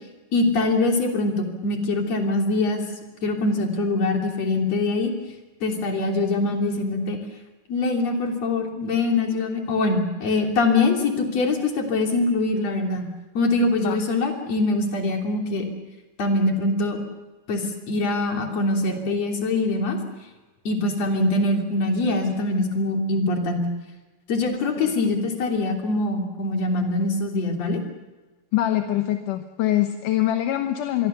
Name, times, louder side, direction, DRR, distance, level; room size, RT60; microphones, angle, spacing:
voice 1, 0.3-2.8 3.2-5.1 5.6-7.2 7.7-13.0 13.3-15.7 16.2-17.0 17.5-20.0 20.7-23.7 24.3-27.8, left 2 dB, 50° left, 2 dB, 4.2 m, -23 dB
voice 2, 28.5-31.1, left 13 dB, 75° left, 6 dB, 2.6 m, -24 dB
27.0 x 22.0 x 6.9 m, 1.2 s
omnidirectional pair, 3.9 m